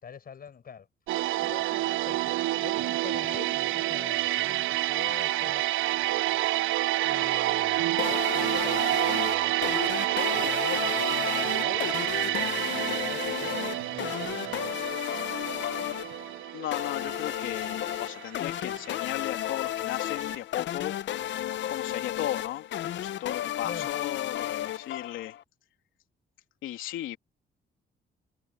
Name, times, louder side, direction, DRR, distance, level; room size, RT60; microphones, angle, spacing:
voice 1, 0.0-0.9 1.4-5.6 7.0-14.7 23.4-23.9, left 7 dB, 50° left, 5.4 m, -45 dB
sound 1, 1.1-19.9 20.2-20.4, right 16 dB, 85° right, 0.5 m, -29 dB
sound 2, 8.0-25.4, left 12 dB, 70° left, 0.8 m, -33 dB
voice 2, 16.5-21.0 21.7-22.7 23.0-25.4 26.6-27.2, left 13 dB, 90° left, 3.1 m, -36 dB
cardioid pair, 90°, 20 cm